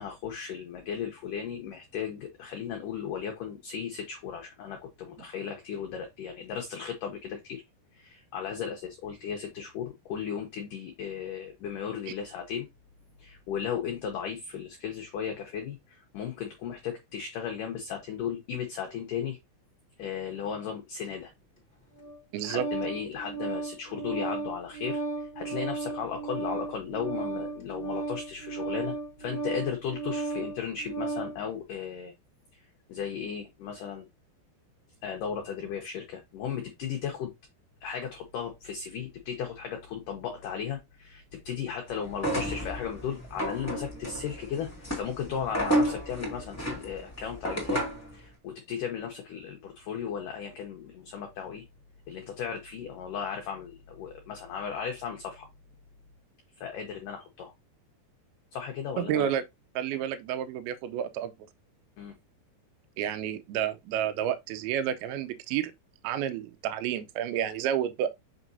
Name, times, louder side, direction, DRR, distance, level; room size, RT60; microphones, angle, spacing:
voice 1, 0.0-7.6 7.9-12.7 13.2-19.4 20.0-21.3 22.4-32.1 32.5-32.6 32.9-34.1 35.0-37.3 37.8-47.8 48.1-51.6 52.1-55.5 56.6-57.5 58.5-59.3 62.0-62.2, left 7 dB, 80° left, 1.9 m, -36 dB
Organ, 22.0-31.4, right 3 dB, 40° left, 0.7 m, -35 dB
voice 2, 22.3-22.7 59.0-59.4 59.8-61.3 63.0-65.7 66.0-68.1, right 10 dB, 80° right, 2.3 m, -30 dB
sound 1, 42.1-48.1, right 1 dB, 10° left, 0.8 m, -31 dB
6.1 x 6.0 x 2.7 m
omnidirectional pair, 5.1 m